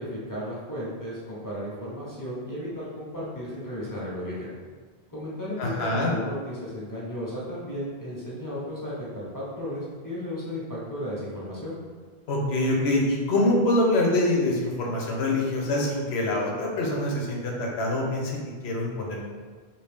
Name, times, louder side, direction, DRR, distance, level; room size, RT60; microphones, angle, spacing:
voice 1, 0.0-4.5 5.1-11.8, equal, 20° left, -8 dB, 0.8 m, -34 dB
voice 2, 5.6-6.1 12.3-18.4 18.6-19.2, left 1 dB, 80° left, -1 dB, 1.0 m, -25 dB
2.8 x 2.7 x 3.4 m, 1.5 s
omnidirectional pair, 1.1 m